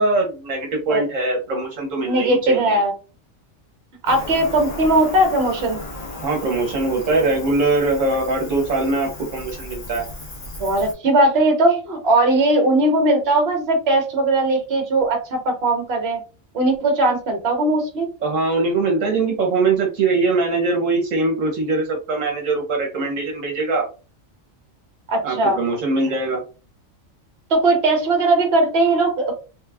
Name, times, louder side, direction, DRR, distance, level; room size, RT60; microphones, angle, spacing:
voice 1, 0.0-2.8 6.2-10.1 18.2-23.9 25.2-26.4, right 3 dB, 70° right, 1 dB, 1.2 m, -22 dB
voice 2, 2.0-2.9 4.0-5.8 10.6-16.2 16.5-18.1 25.1-25.6 27.5-29.3, right 2 dB, 50° right, 3 dB, 1.2 m, -19 dB
Cricket, 4.1-10.9, left 2 dB, 35° left, 1.2 m, -35 dB
3.4 x 2.3 x 3.3 m, 0.34 s
omnidirectional pair, 1.4 m